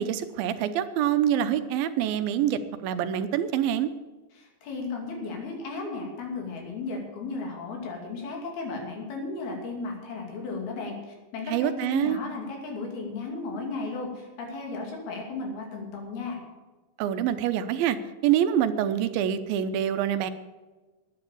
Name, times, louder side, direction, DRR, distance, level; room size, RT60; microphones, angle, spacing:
voice 1, 0.0-3.9 11.5-12.2 17.0-18.0 18.2-20.3, right 10 dB, 85° right, 11 dB, 2.5 m, -26 dB
voice 2, 4.3-16.4, left 3 dB, 85° left, 1 dB, 4.7 m, -35 dB
11.5 x 9.6 x 8.4 m, 1.2 s
omnidirectional pair, 4.3 m